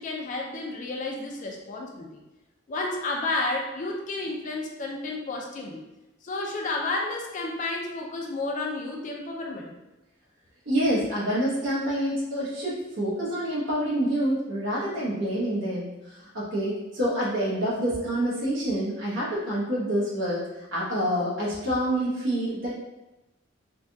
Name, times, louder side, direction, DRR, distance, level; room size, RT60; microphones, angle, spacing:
voice 1, 0.0-2.2 2.7-5.8 6.2-9.7, left 2 dB, 40° left, 0 dB, 0.4 m, -31 dB
voice 2, 10.7-15.9 16.2-20.4 20.7-22.7, equal, 70° right, -8 dB, 1.0 m, -27 dB
3.4 x 2.3 x 2.6 m, 1.0 s
head